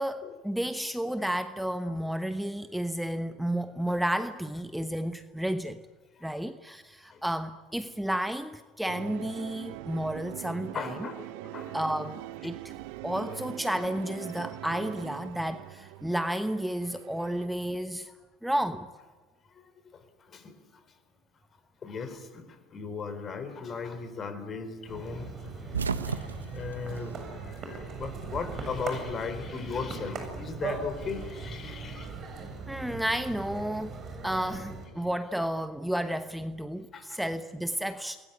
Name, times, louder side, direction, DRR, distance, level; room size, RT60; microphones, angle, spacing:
voice 1, 0.0-5.8 6.2-11.0 11.7-12.7 13.0-18.1 18.4-18.9 32.7-34.0 34.2-38.2, right 1 dB, 5° right, 10 dB, 1.1 m, -32 dB
sound 1, 8.9-17.5, right 18 dB, 65° right, 0.8 m, -42 dB
voice 2, 10.7-11.9 15.3-15.4 18.0-18.1 19.5-20.6 21.8-32.2 35.0-35.1 36.9-37.2 38.0-38.1, left 5 dB, 35° left, 11 dB, 4.4 m, -38 dB
sound 2, 24.9-34.9, right 4 dB, 40° right, 7.3 m, -39 dB
sound 3, 25.4-28.0 28.2-29.3 30.5-32.0, right 5 dB, 85° right, 1.0 m, -36 dB
28.5 x 21.0 x 9.4 m, 1.4 s
hypercardioid pair, 70°, 0 cm